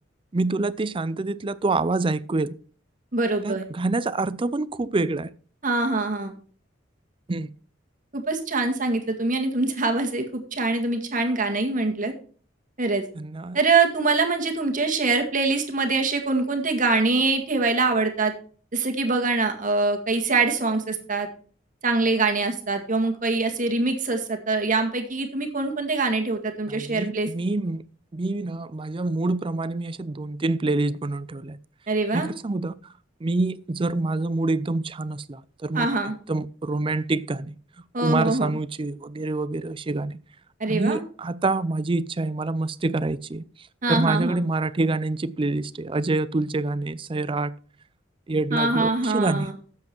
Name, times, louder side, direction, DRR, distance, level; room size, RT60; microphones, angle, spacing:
voice 1, 0.3-2.6 3.4-5.3 7.3-7.5 13.2-13.6 26.7-27.8 28.1-31.6 32.1-32.8 33.2-35.9 36.3-37.6 38.0-40.2 40.7-47.5 48.3-49.5, right 2 dB, 25° right, 0.4 m, -26 dB
voice 2, 3.1-3.7 5.6-6.3 8.1-12.1 12.8-13.0 13.5-18.3 18.7-21.3 21.8-27.3 31.9-32.3 35.7-36.2 37.9-38.5 40.6-41.0 43.8-44.4 48.5-49.5, right 3 dB, 40° right, 1.9 m, -24 dB
12.0 x 7.7 x 4.5 m
head